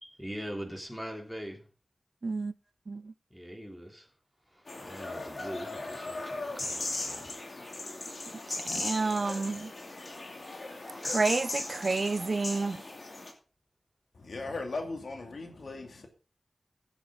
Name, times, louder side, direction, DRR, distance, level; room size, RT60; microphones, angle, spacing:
voice 1, 0.0-1.6 3.3-4.1 4.5-7.3, equal, ahead, 3.3 m, -42 dB
voice 2, 2.2-2.5 2.9-3.1 8.7-9.7 11.0-12.8, right 3 dB, 65° right, 0.5 m, -30 dB
sound 1, 4.7-13.3, left 2 dB, 65° left, 2.7 m, -38 dB
voice 3, 14.1-16.1, left 3 dB, 85° left, 2.5 m, -38 dB
15.5 x 8.3 x 3.9 m
wide cardioid pair, 55°, 0 cm